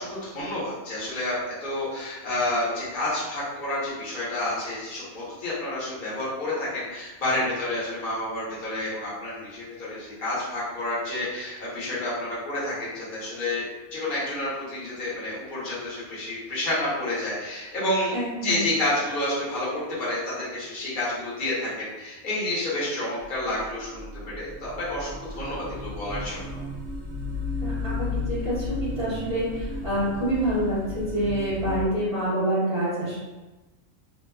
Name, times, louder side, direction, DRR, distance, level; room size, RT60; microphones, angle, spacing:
voice 1, 0.0-1.3 1.6-13.6 13.9-18.2 18.4-19.7 20.0-26.6, left 1 dB, 45° left, -8 dB, 1.1 m, -29 dB
voice 2, 18.1-18.6 27.6-33.2, right 1 dB, 45° right, -14 dB, 1.2 m, -27 dB
sound 1, 23.2-31.8, left 3 dB, 80° right, 1.0 m, -34 dB
2.9 x 2.2 x 2.3 m, 1.1 s
omnidirectional pair, 1.3 m